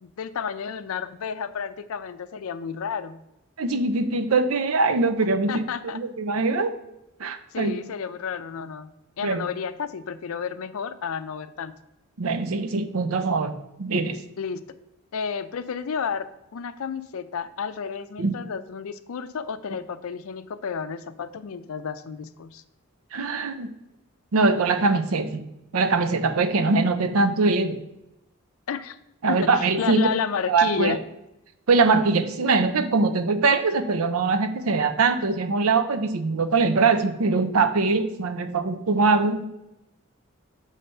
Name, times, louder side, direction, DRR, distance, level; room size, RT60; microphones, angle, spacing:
voice 1, 0.0-3.2 5.5-6.0 7.5-8.9 9.2-11.7 14.4-14.6 15.1-22.6 28.7-29.0 29.3-31.0, left 6 dB, 75° left, 12 dB, 0.4 m, -31 dB
voice 2, 3.6-6.7 7.2-7.8 9.2-9.4 12.2-13.5 13.8-14.2 18.2-18.3 23.1-23.7 24.3-25.4 25.7-27.8 29.2-30.0 30.5-31.0 31.7-39.4, right 3 dB, 80° right, 10 dB, 0.6 m, -22 dB
6.7 x 3.3 x 5.4 m, 0.88 s
head